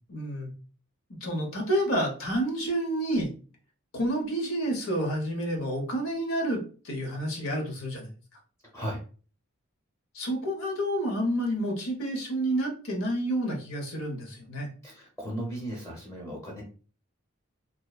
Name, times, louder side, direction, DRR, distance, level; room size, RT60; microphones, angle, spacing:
voice 1, 0.1-0.5 1.2-3.3 3.9-6.6 6.8-8.1 10.1-14.7, right 1 dB, 90° left, 1 dB, 0.8 m, -29 dB
voice 2, 14.8-16.6, equal, 15° left, -1 dB, 0.8 m, -36 dB
2.6 x 2.1 x 2.3 m, 0.38 s
head